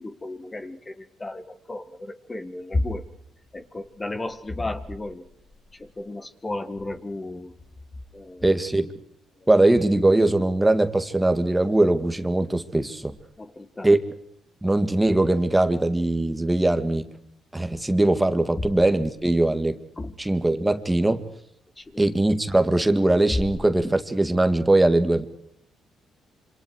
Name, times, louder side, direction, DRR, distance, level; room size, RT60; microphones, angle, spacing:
voice 1, 0.0-3.0 3.5-5.2 5.7-7.5 8.1-8.5 9.4-9.5 13.4-14.0 18.6-18.7 20.0-20.2 21.8-22.1, left 2 dB, 20° left, 9 dB, 1.9 m, -33 dB
voice 2, 8.4-8.9 9.5-13.1 13.8-14.0 14.6-17.1 17.5-19.8 20.2-21.2 22.0-25.3, right 2 dB, 10° right, 9 dB, 2.0 m, -21 dB
27.5 x 26.5 x 4.7 m, 0.72 s
cardioid pair, 90°, 0 cm